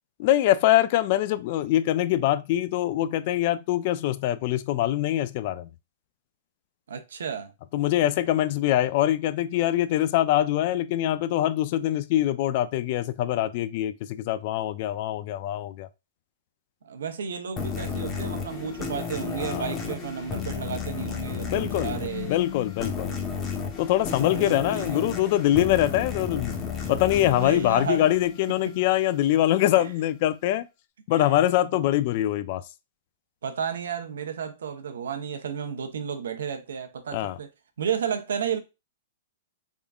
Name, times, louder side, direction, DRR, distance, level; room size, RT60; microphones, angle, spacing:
voice 1, 0.2-5.7 7.7-15.9 19.4-19.7 21.5-22.0 22.2-23.2 23.8-26.5 26.9-30.7 31.1-32.6 37.1-37.4, left 13 dB, 45° left, 0.3 m, -24 dB
voice 2, 6.9-7.5 16.8-22.4 24.2-25.0 27.2-28.1 28.6-28.9 29.7-29.9 31.1-31.2 33.4-37.5 37.8-38.6, right 7 dB, 85° right, 0.8 m, -32 dB
sound 1, 17.6-28.7, left 6 dB, 20° left, 0.8 m, -33 dB
3.6 x 3.5 x 2.3 m
hypercardioid pair, 150°, 0 cm